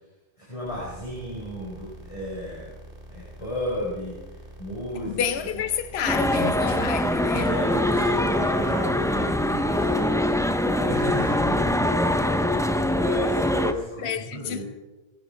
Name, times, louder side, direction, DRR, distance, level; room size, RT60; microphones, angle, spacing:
voice 1, 0.4-2.7 3.1-5.2 7.3-14.6, equal, 30° left, 4.2 m, -33 dB
sound 1, 0.6-12.1, right 1 dB, 60° right, 2.4 m, -45 dB
voice 2, 5.0-7.6 14.0-14.6, left 8 dB, 80° left, 1.1 m, -29 dB
Run, 5.3-10.9, left 1 dB, 55° left, 2.4 m, -49 dB
sound 2, 6.1-13.7, left 1 dB, 5° left, 0.5 m, -23 dB
19.0 x 16.0 x 4.6 m
omnidirectional pair, 1.1 m